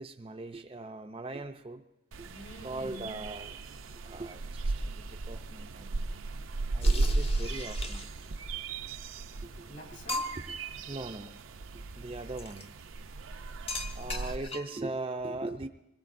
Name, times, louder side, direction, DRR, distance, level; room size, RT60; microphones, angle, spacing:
voice 1, 0.0-1.8 2.6-3.5 4.0-6.1 6.7-8.1 9.4-9.7 10.9-11.3 11.9-12.8 13.9-15.7, right 2 dB, 25° right, 6 dB, 0.4 m, -39 dB
sound 1, 2.1-14.4, right 2 dB, 85° right, 0.6 m, -35 dB
voice 2, 2.2-3.2 9.7-10.3 13.9-14.3, left 1 dB, 55° left, 0 dB, 3.1 m, -48 dB
sound 2, 6.8-8.3 9.2-9.3 9.6-9.7 10.1-10.6 12.4-12.7 13.7-14.9, left 2 dB, 30° left, 0.9 m, -38 dB
25.5 x 21.0 x 2.6 m, 0.91 s
head